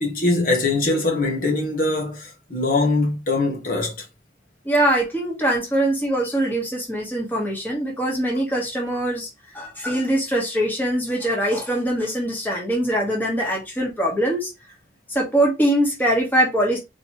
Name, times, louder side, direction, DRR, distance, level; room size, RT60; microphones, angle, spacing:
voice 1, 0.0-4.1, left 2 dB, 45° left, 1.2 m, -22 dB
voice 2, 4.6-9.3 9.5-14.5 15.1-16.8, right 1 dB, 10° left, 1.3 m, -22 dB
4.3 x 3.1 x 3.0 m
head